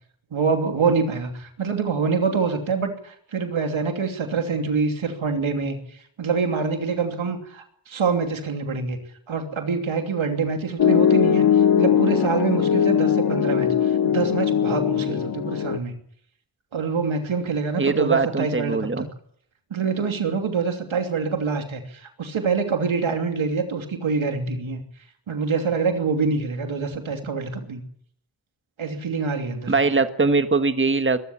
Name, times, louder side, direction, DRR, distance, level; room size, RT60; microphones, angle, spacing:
voice 1, 0.3-5.8 6.2-9.0 9.3-15.9 16.7-19.1 19.7-24.8 25.3-27.8 28.8-29.7, right 5 dB, 90° right, 5 dB, 3.1 m, -25 dB
Piano, 10.8-15.8, left 8 dB, 50° left, 0.7 m, -20 dB
voice 2, 17.8-19.1 29.7-31.2, right 4 dB, 25° right, 9 dB, 1.6 m, -21 dB
22.0 x 14.0 x 8.6 m, 0.67 s
cardioid pair, 55°, 46 cm